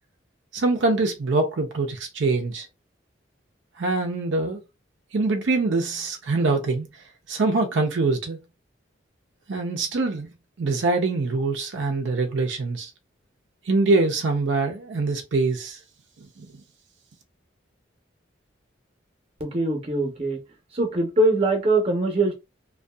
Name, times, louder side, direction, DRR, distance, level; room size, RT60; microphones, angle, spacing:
voice 1, 0.5-2.7 3.8-4.6 5.1-6.9 7.3-8.4 9.5-10.3 10.6-12.9 13.7-15.8 16.4-16.5, right 3 dB, 80° right, 0.5 m, -24 dB
voice 2, 19.4-20.4 20.7-22.3, right 2 dB, 30° right, 0.8 m, -22 dB
2.6 x 2.2 x 2.2 m
head